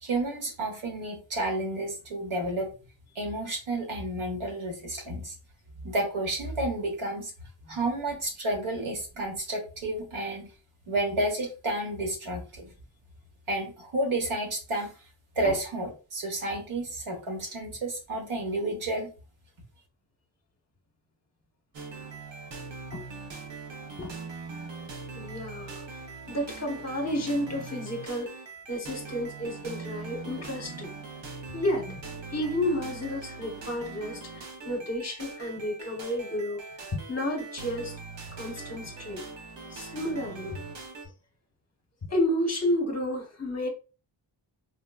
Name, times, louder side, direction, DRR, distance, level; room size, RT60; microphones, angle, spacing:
voice 1, 0.0-2.7 3.1-5.3 5.8-7.3 7.7-10.5 10.9-12.7 13.5-14.9 15.3-19.1, right 1 dB, 75° right, 1.2 m, -31 dB
sound 1, 21.7-41.1, right 4 dB, 60° right, 0.7 m, -41 dB
voice 2, 25.1-26.0 26.3-28.3 28.7-30.9 31.5-32.0 32.3-36.6 36.9-38.0 38.3-39.2 39.7-40.6 42.0-43.7, left 1 dB, 30° left, 0.9 m, -31 dB
4.1 x 2.1 x 2.3 m
wide cardioid pair, 100°, 49 cm